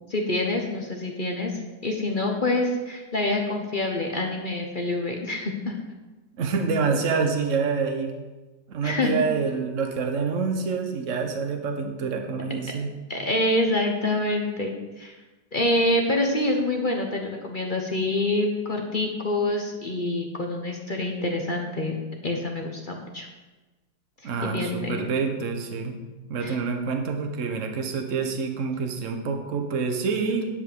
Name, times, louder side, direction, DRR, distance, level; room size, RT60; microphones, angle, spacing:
voice 1, 0.1-1.5 1.8-5.7 8.8-9.2 13.1-15.2 15.5-22.0 22.2-23.3 24.4-25.0 26.4-26.6, left 2 dB, 35° left, 2 dB, 0.8 m, -26 dB
voice 2, 6.4-8.1 8.7-12.9 24.2-26.0 26.3-30.4, right 5 dB, 45° right, 4 dB, 1.3 m, -27 dB
10.0 x 5.5 x 6.9 m, 1.2 s
omnidirectional pair, 2.1 m